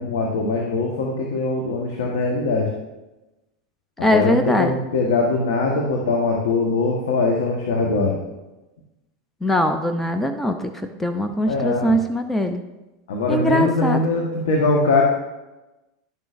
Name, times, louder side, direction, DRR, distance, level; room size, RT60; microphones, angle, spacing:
voice 1, 0.0-2.7 4.0-8.2 11.4-12.0 13.1-15.0, left 3 dB, 75° left, 0 dB, 1.2 m, -22 dB
voice 2, 4.0-4.7 9.4-12.6 13.3-14.0, equal, 10° left, 6 dB, 0.5 m, -21 dB
10.5 x 6.8 x 2.5 m, 1.0 s
hypercardioid pair, 110°, 2 cm